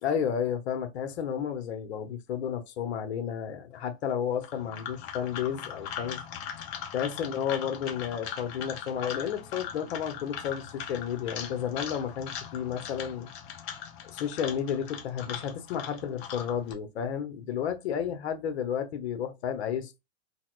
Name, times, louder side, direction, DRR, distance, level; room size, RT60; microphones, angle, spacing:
voice 1, 0.0-6.2 6.9-13.3 14.0-20.0, left 8 dB, 65° left, 1.0 m, -32 dB
sound 1, 4.3-16.7, left 8 dB, 35° left, 0.9 m, -40 dB
4.0 x 2.2 x 2.5 m
hypercardioid pair, 130°, 34 cm